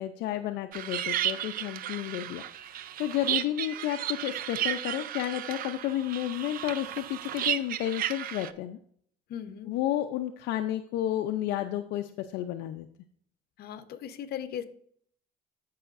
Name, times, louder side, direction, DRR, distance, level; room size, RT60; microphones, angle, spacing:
voice 1, 0.0-2.4 3.0-8.8 9.6-12.9, left 12 dB, 85° left, 6 dB, 0.5 m, -31 dB
sound 1, 0.7-8.5, right 11 dB, 60° right, 0.5 m, -33 dB
voice 2, 9.3-9.7 13.6-14.7, left 9 dB, 65° left, 10 dB, 0.9 m, -38 dB
14.0 x 5.6 x 2.5 m, 0.63 s
cardioid pair, 110°, 17 cm